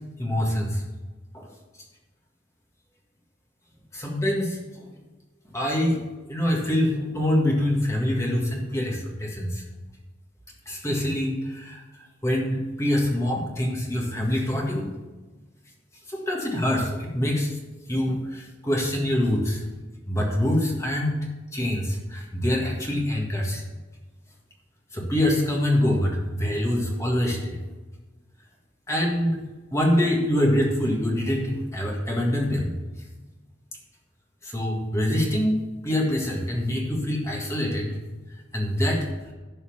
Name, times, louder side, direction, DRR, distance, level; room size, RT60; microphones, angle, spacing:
voice 1, 0.2-0.8 1.3-1.5 3.9-4.9 5.5-6.0 6.3-9.6 10.6-11.8 12.2-14.9 16.1-17.6 17.9-19.6 20.1-23.6 24.9-27.6 28.9-29.4 29.7-32.7 34.4-38.0 38.5-39.1, left 1 dB, 15° left, -1 dB, 1.7 m, -25 dB
11.5 x 4.3 x 7.2 m, 1.2 s
head